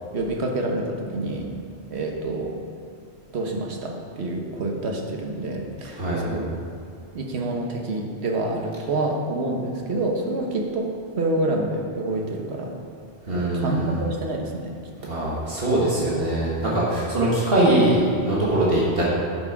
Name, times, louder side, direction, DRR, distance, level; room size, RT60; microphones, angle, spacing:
voice 1, 0.1-1.5 1.9-2.6 3.3-6.5 7.1-10.9 11.2-12.7 13.3-14.8 15.0-15.1, right 2 dB, 80° right, 1 dB, 1.3 m, -27 dB
voice 2, 13.3-14.0 15.1-19.1, right 1 dB, 60° right, -6 dB, 1.8 m, -22 dB
10.0 x 6.1 x 4.6 m, 2.6 s
omnidirectional pair, 1.1 m